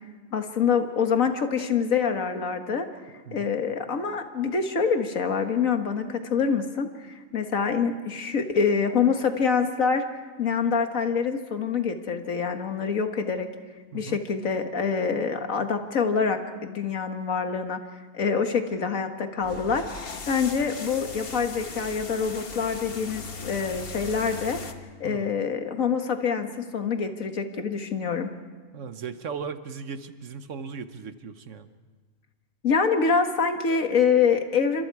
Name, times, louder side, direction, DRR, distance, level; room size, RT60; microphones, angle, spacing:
voice 1, 0.3-2.9 3.3-10.0 10.4-13.5 13.9-17.8 18.1-19.8 20.3-24.6 25.0-28.3 32.6-34.8, left 6 dB, 85° left, 6 dB, 2.0 m, -25 dB
voice 2, 13.9-14.2 25.0-25.3 28.7-31.7, right 5 dB, 70° right, 10 dB, 1.4 m, -37 dB
sound 1, 19.4-24.7, left 4 dB, 50° left, 1.4 m, -38 dB
28.5 x 26.0 x 4.8 m, 1.4 s
omnidirectional pair, 1.4 m